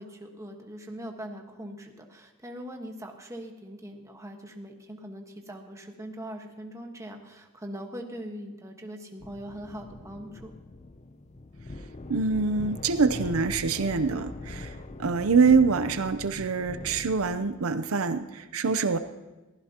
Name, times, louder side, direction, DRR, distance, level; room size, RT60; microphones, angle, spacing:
voice 1, 0.0-10.5, equal, 15° right, 3 dB, 1.4 m, -41 dB
sound 1, 9.2-17.6, left 2 dB, 30° left, 0.6 m, -42 dB
voice 2, 12.1-14.7 15.0-19.0, right 4 dB, 75° right, 10 dB, 0.6 m, -25 dB
22.0 x 15.5 x 2.9 m, 1.1 s
head